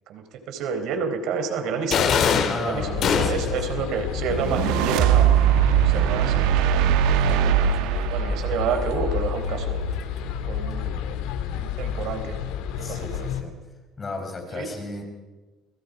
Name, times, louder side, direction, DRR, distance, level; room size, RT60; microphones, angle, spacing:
voice 1, 0.1-2.1 2.3-6.7 7.4-7.7 8.1-9.8 10.4-10.9 11.5-12.4 12.7-13.3 14.5-14.7, right 5 dB, 65° right, 6 dB, 4.2 m, -30 dB
sound 1, 1.9-3.7, left 7 dB, 50° left, 2.8 m, -22 dB
voice 2, 2.5-3.8 8.3-8.4 12.8-13.5 14.0-15.0, left 3 dB, 25° left, 4 dB, 5.1 m, -35 dB
sound 2, 2.7-13.4, left 8 dB, 85° left, 2.7 m, -30 dB
sound 3, 4.3-9.6, right 12 dB, 85° right, 1.4 m, -21 dB
29.5 x 21.5 x 5.2 m, 1.2 s
cardioid pair, 135°, 0 cm